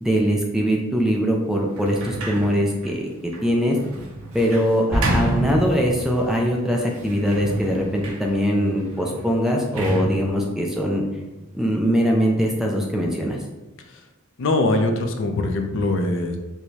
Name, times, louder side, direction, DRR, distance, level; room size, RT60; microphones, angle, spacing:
voice 1, 0.0-3.1 3.4-3.8 4.3-11.0 11.5-13.4, equal, ahead, 0 dB, 0.3 m, -22 dB
Sliding door, 1.7-6.2 6.9-11.7, right 1 dB, 75° right, 0.6 m, -31 dB
Explosion, 4.9-6.7, equal, 55° right, 1.3 m, -27 dB
voice 2, 14.4-16.4, left 2 dB, 60° left, 5 dB, 0.4 m, -22 dB
4.6 x 2.1 x 2.7 m, 1.1 s
head